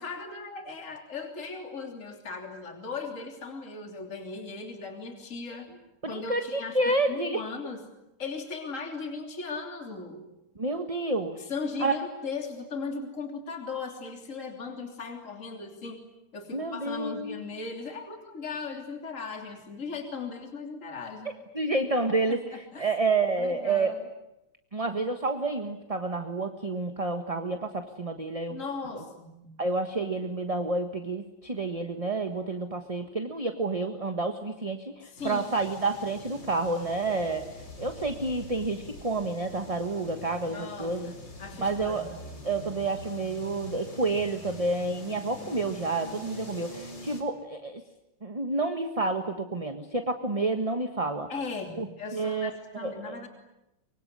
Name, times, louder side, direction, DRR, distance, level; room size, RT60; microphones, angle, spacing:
voice 1, 0.0-5.7 6.1-6.8 7.1-7.8 8.2-10.2 11.5-16.0 16.3-21.3 22.3-22.4 22.7-22.9 23.4-24.0 28.5-29.6 35.1-35.5 40.5-41.1 41.4-42.1 51.3-53.3, left 4 dB, 35° left, 3 dB, 3.5 m, -37 dB
voice 2, 6.0-7.4 10.5-11.5 11.8-11.9 16.5-17.4 21.5-24.0 24.7-28.6 28.9-29.0 29.6-37.5 37.8-41.1 41.6-42.1 42.4-47.8 48.2-51.3 51.8-51.9 52.1-52.5 52.8-53.2, right 3 dB, 20° right, 6 dB, 1.3 m, -29 dB
sound 1, 35.2-47.2, left 1 dB, 55° left, 5.1 m, -44 dB
25.0 x 24.5 x 9.7 m, 0.89 s
omnidirectional pair, 2.4 m